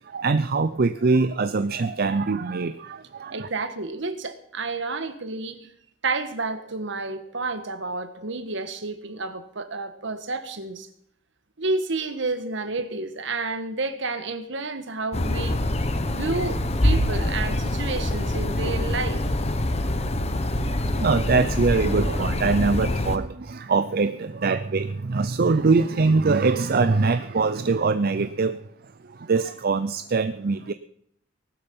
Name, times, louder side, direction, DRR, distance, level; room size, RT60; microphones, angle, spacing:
voice 1, 0.0-3.5 20.3-30.7, right 4 dB, 50° right, 12 dB, 0.6 m, -23 dB
voice 2, 3.3-5.7 6.0-10.9 11.6-15.6 16.0-19.5, right 3 dB, 65° right, 10 dB, 1.6 m, -30 dB
sound 1, 15.1-23.2, left 1 dB, 35° left, 1.2 m, -25 dB
19.0 x 12.5 x 5.5 m, 0.71 s
head